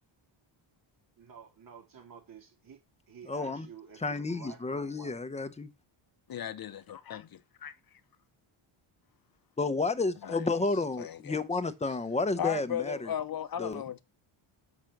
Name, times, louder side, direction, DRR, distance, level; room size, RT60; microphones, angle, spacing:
voice 1, 1.2-2.8 3.1-5.2, right 7 dB, 40° right, 3.6 m, -51 dB
voice 2, 3.3-3.7 4.0-5.7 9.6-13.1 13.6-13.8, left 3 dB, 15° left, 0.8 m, -31 dB
voice 3, 6.3-7.8 10.2-10.5 11.0-11.4 12.4-14.0, left 10 dB, 45° left, 0.7 m, -36 dB
7.3 x 6.0 x 6.5 m
cardioid pair, 150°, 50 cm